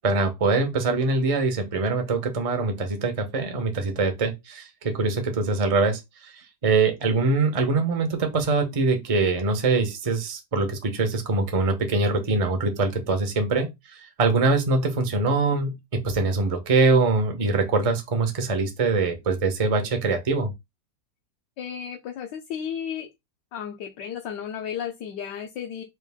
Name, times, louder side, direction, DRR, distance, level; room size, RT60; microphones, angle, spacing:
voice 1, 0.0-20.5, right 3 dB, 35° right, 0.5 m, -23 dB
voice 2, 21.6-23.1 23.5-25.8, left 8 dB, 75° left, 1.3 m, -33 dB
4.5 x 2.5 x 3.5 m
omnidirectional pair, 2.0 m